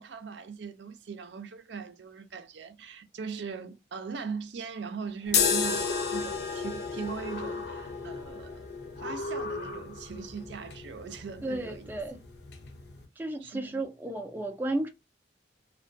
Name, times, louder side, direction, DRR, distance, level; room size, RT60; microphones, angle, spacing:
voice 1, 0.0-8.6 9.0-11.9 13.4-13.8, right 5 dB, 70° right, 0.5 m, -40 dB
sound 1, 5.2-6.6 7.0-8.2 8.9-10.2, left 2 dB, 85° left, 1.0 m, -40 dB
sound 2, 5.3-13.1, left 5 dB, 60° left, 0.6 m, -33 dB
voice 2, 11.4-12.2 13.2-14.9, right 2 dB, 10° right, 0.3 m, -33 dB
2.3 x 2.2 x 2.5 m
head